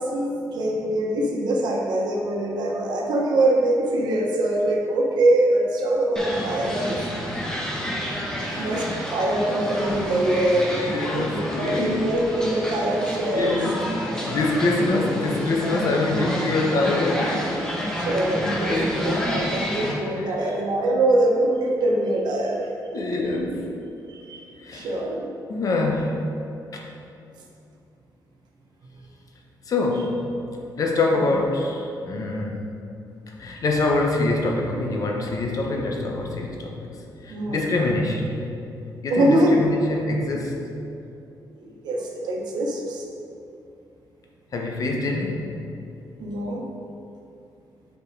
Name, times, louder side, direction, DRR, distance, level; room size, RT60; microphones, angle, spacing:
voice 1, 0.0-7.0 8.6-10.8 11.1-13.6 18.0-22.7 23.1-23.2 24.1-24.4 24.7-25.3 37.3-37.6 39.1-39.6 41.6-43.0 46.2-46.6, right 1 dB, 80° right, -1 dB, 1.0 m, -23 dB
sound 1, 6.2-19.9, equal, 10° left, 1.1 m, -29 dB
voice 2, 8.3-8.8 10.8-12.1 13.3-13.9 14.3-17.5 18.7-18.9 19.8-19.9 20.3-20.5 22.9-23.8 24.6-24.9 25.5-26.3 26.7-26.8 29.7-30.3 30.8-32.7 33.4-36.9 37.2-38.3 39.0-40.6 44.5-45.5, left 2 dB, 55° left, 1 dB, 0.9 m, -25 dB
5.9 x 4.5 x 4.6 m, 2.7 s
cardioid pair, 105°, 7 cm